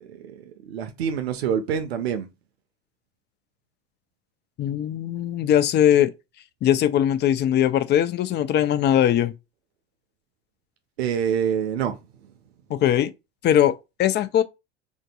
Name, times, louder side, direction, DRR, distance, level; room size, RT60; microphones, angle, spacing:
voice 1, 0.0-2.3 11.0-12.0, right 8 dB, 85° right, 0.6 m, -26 dB
voice 2, 4.6-6.1 6.6-9.3 12.7-13.1 13.4-14.4, left 10 dB, 35° left, 0.5 m, -20 dB
3.7 x 2.6 x 2.2 m
hypercardioid pair, 80°, 31 cm